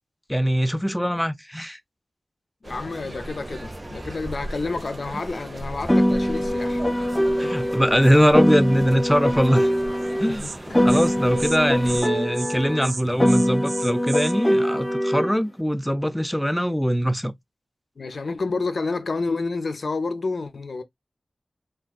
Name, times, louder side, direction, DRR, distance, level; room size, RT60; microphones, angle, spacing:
voice 1, 0.3-1.8 7.4-9.7 10.2-10.5 10.8-17.3, equal, 5° left, 0.4 m, -22 dB
voice 2, 2.6-6.8 7.4-7.5 10.3-10.9 11.3-11.4 18.0-20.8, left 3 dB, 75° left, 0.4 m, -29 dB
sound 1, 2.6-12.0, right 1 dB, 30° right, 0.7 m, -37 dB
Piano, 5.9-10.3 10.7-15.3, equal, 40° left, 1.8 m, -22 dB
Insect, 10.0-10.1 10.4-10.6 10.9-11.1 11.4-11.6 11.8-12.1 12.3-12.6 12.8-14.3, right 4 dB, 85° right, 0.4 m, -34 dB
3.5 x 2.4 x 2.3 m
wide cardioid pair, 75°, 0 cm